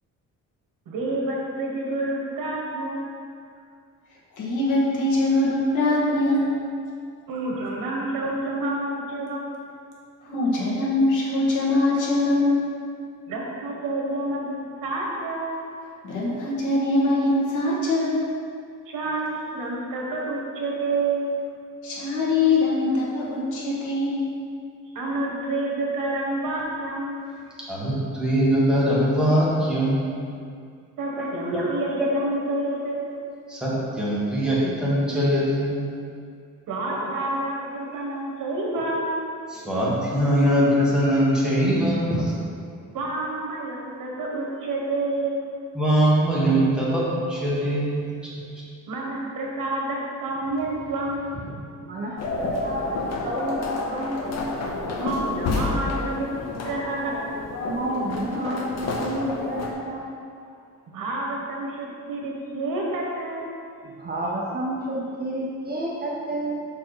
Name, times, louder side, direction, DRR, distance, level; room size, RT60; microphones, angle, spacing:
voice 1, 0.8-3.1 7.3-9.6 13.3-15.6 18.8-21.4 24.9-27.3 31.0-33.3 36.7-39.2 42.9-45.4 48.9-51.4 55.0-57.4 60.9-63.5, right 2 dB, 80° right, -2 dB, 1.5 m, -29 dB
voice 2, 4.4-6.6 10.2-12.7 16.0-18.3 21.8-24.3, left 2 dB, 70° left, -5 dB, 1.6 m, -22 dB
voice 3, 27.7-30.2 31.2-32.1 33.5-35.9 36.9-37.1 38.7-38.9 39.5-42.3 45.7-48.1 48.3-48.4, equal, ahead, -8 dB, 1.5 m, -22 dB
voice 4, 51.5-54.6 57.6-60.1 64.0-66.7, right 1 dB, 30° right, -3 dB, 0.6 m, -30 dB
sound 1, 52.2-59.7, left 2 dB, 50° left, 0.8 m, -29 dB
5.7 x 4.7 x 4.8 m, 2.3 s
cardioid pair, 150°, 32 cm